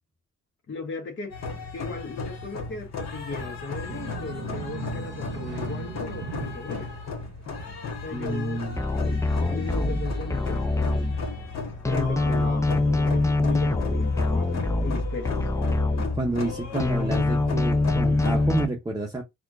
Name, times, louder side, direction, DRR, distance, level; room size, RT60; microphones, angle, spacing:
voice 1, 0.7-1.4 1.7-6.9 8.0-8.6 8.9-11.1 11.8-15.4, left 3 dB, 40° left, 1.1 m, -36 dB
sound 1, 1.3-18.6, left 4 dB, 60° left, 1.4 m, -35 dB
sound 2, 3.9-7.8, right 5 dB, 85° right, 0.8 m, -38 dB
voice 2, 8.1-8.8 16.2-19.2, right 2 dB, 15° right, 0.7 m, -29 dB
sound 3, 8.8-11.5 11.8-16.5 16.8-18.6, left 2 dB, 10° left, 0.4 m, -24 dB
4.2 x 2.4 x 2.5 m
cardioid pair, 90°, 30 cm